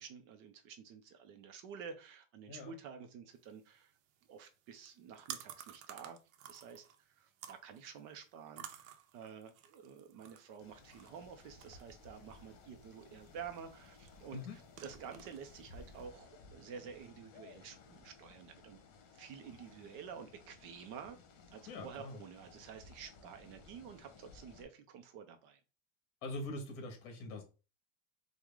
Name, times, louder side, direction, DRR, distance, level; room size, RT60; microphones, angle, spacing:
voice 1, 0.0-3.9 4.3-6.2 6.4-18.8 19.1-21.2 21.5-25.6, right 7 dB, 35° right, 0.4 m, -50 dB
sound 1, 3.4-16.1, right 10 dB, 85° right, 0.8 m, -54 dB
sound 2, 10.6-24.7, left 4 dB, 70° left, 1.2 m, -58 dB
voice 2, 21.7-22.2 26.2-27.4, left 2 dB, 50° left, 1.6 m, -43 dB
4.6 x 2.1 x 3.6 m
supercardioid pair, 160°, 39 cm